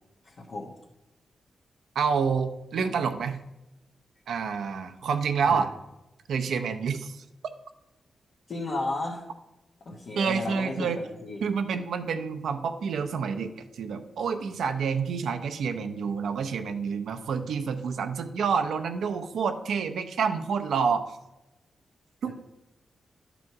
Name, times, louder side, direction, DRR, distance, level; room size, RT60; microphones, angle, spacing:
voice 1, 0.2-0.7 5.5-5.7 8.5-9.3 9.8-11.4 22.2-22.3, left 2 dB, 60° left, -3 dB, 1.3 m, -34 dB
voice 2, 1.9-3.4 4.3-5.7 6.3-7.2 10.2-11.0 11.4-21.0 22.2-22.3, right 6 dB, 85° right, 7 dB, 0.6 m, -28 dB
11.0 x 5.1 x 4.7 m, 0.95 s
cardioid pair, 80°, 0 cm